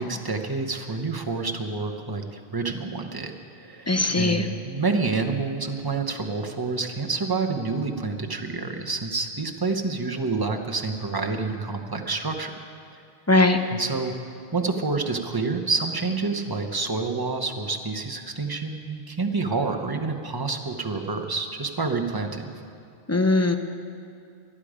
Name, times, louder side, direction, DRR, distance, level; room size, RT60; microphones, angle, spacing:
voice 1, 0.0-3.3 3.6-12.5 13.7-14.1 14.5-22.5, right 3 dB, 20° right, 3 dB, 1.0 m, -28 dB
voice 2, 3.9-4.5 13.3-13.6 23.1-23.6, left 2 dB, 15° left, 6 dB, 0.6 m, -20 dB
24.5 x 10.0 x 5.0 m, 2.4 s
omnidirectional pair, 1.1 m